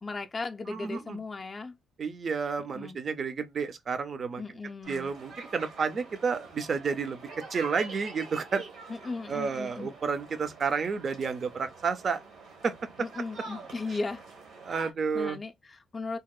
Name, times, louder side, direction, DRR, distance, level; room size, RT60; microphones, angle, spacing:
voice 1, 0.0-1.7 2.7-3.0 4.4-5.1 8.9-9.9 13.0-14.2 14.7-16.2, left 3 dB, 25° left, 0.3 m, -37 dB
voice 2, 0.7-1.2 2.0-4.4 4.9-7.2 7.5-8.6 9.3-12.2 12.6-12.7 14.6-15.4, right 5 dB, 45° right, 0.5 m, -31 dB
sound 1, 4.8-14.9, right 3 dB, 75° right, 1.0 m, -46 dB
2.8 x 2.0 x 2.2 m
cardioid pair, 90°, 0 cm